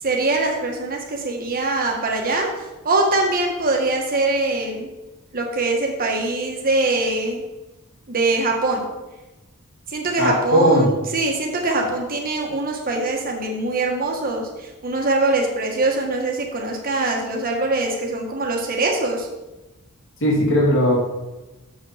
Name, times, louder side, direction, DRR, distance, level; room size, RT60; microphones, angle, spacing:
voice 1, 0.0-4.9 5.3-7.4 8.1-8.9 9.9-19.3, right 2 dB, 40° right, 1 dB, 1.5 m, -23 dB
voice 2, 10.2-10.9 20.2-21.0, equal, 60° left, -4 dB, 2.6 m, -17 dB
6.9 x 5.5 x 5.8 m, 1.1 s
head